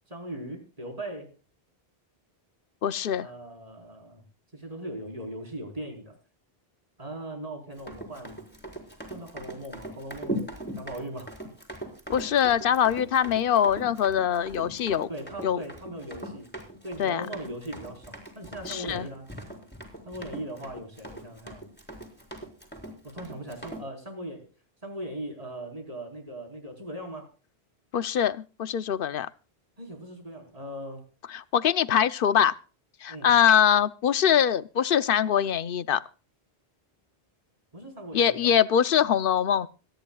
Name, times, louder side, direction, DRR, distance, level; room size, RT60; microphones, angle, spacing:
voice 1, 0.1-1.3 3.2-4.2 4.5-6.2 7.0-8.4 9.1-10.4 10.8-11.3 15.1-16.5 16.8-19.3 20.1-21.6 23.0-24.5 24.8-27.3 29.8-31.0 33.1-33.3 37.7-38.6, right 1 dB, 35° right, 4.4 m, -39 dB
voice 2, 2.8-3.3 12.1-15.1 15.4-15.6 17.0-17.3 18.7-19.1 27.9-29.3 31.3-32.5 33.0-36.0 38.1-39.7, left 9 dB, 60° left, 0.9 m, -23 dB
Run, 7.8-23.8, right 1 dB, 10° left, 4.3 m, -40 dB
26.0 x 10.5 x 2.3 m
omnidirectional pair, 1.0 m